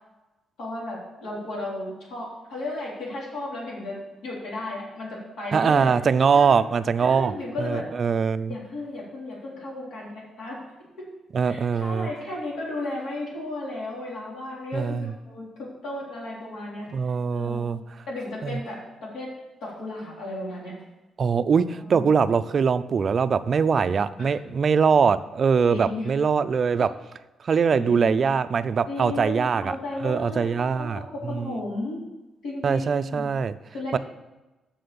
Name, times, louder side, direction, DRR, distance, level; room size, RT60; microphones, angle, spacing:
voice 1, 0.6-6.0 6.3-6.6 7.0-7.9 8.5-10.6 11.4-15.5 15.8-16.9 17.3-17.8 18.1-19.3 19.6-20.7 21.8-22.0 24.2-24.4 25.7-26.1 27.7-28.2 28.9-30.5 30.8-32.0 32.4-33.3 33.7-34.0, left 2 dB, 75° left, -5 dB, 3.7 m, -34 dB
voice 2, 5.5-8.5 11.3-12.1 14.7-15.1 16.9-17.8 18.4-18.6 21.2-26.9 27.5-29.8 30.0-31.6 32.6-33.5 33.9-34.0, right 6 dB, 40° right, 12 dB, 0.4 m, -22 dB
7.9 x 6.2 x 6.9 m, 1.1 s
cardioid pair, 155°, 0 cm